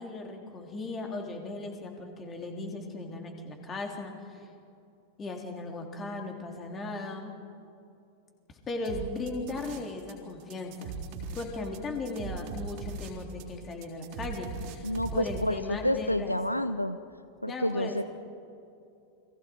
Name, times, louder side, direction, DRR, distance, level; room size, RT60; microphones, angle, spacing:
voice 1, 0.0-4.4 5.2-7.3 8.7-10.9 11.3-16.4 17.5-18.0, left 2 dB, 25° left, 2 dB, 3.6 m, -37 dB
sound 1, 8.8-10.1 10.4-15.5, right 4 dB, 45° right, 3.7 m, -39 dB
voice 2, 14.8-17.0 17.4-18.1, left 1 dB, 85° left, 12 dB, 0.7 m, -29 dB
29.5 x 23.0 x 4.8 m, 2.6 s
figure-of-eight pair, 90°, 0 cm